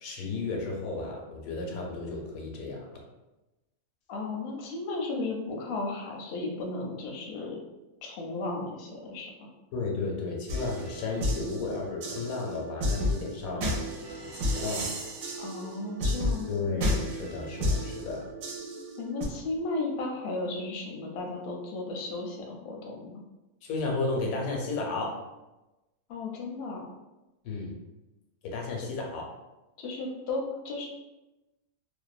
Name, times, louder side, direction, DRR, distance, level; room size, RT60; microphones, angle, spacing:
voice 1, 0.0-2.8 9.7-13.7 14.3-15.0 16.5-18.2 23.6-25.2 27.4-27.8 28.4-29.3, left 3 dB, 90° left, 0 dB, 1.1 m, -33 dB
voice 2, 4.1-7.6 8.0-9.5 15.4-16.5 19.0-23.2 26.1-26.9 28.8-28.9 29.8-30.9, left 3 dB, 65° left, 0 dB, 0.6 m, -35 dB
sound 1, 10.5-19.2, left 1 dB, 85° right, 1.0 m, -32 dB
2.6 x 2.1 x 2.3 m, 1.0 s
omnidirectional pair, 1.4 m